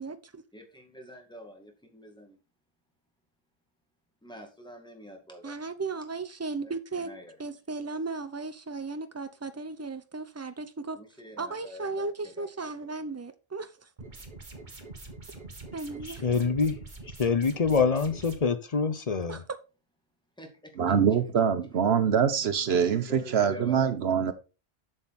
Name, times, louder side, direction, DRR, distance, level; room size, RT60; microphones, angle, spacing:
voice 1, 0.0-0.4 5.4-7.1 7.4-11.0 11.4-13.7 15.7-16.2 19.3-19.4, right 3 dB, 15° right, 0.7 m, -36 dB
voice 2, 0.5-2.4 4.2-5.6 6.6-7.3 7.7-7.9 10.9-12.1 12.4-12.5 12.8-12.9 20.4-21.2 22.7-24.0, equal, 5° left, 2.1 m, -46 dB
sound 1, 14.0-18.4, right 3 dB, 50° right, 1.7 m, -44 dB
voice 3, 16.1-16.8 17.2-19.4, left 5 dB, 40° left, 0.8 m, -25 dB
voice 4, 20.8-24.3, right 7 dB, 90° right, 1.2 m, -24 dB
7.4 x 6.7 x 4.2 m
omnidirectional pair, 1.0 m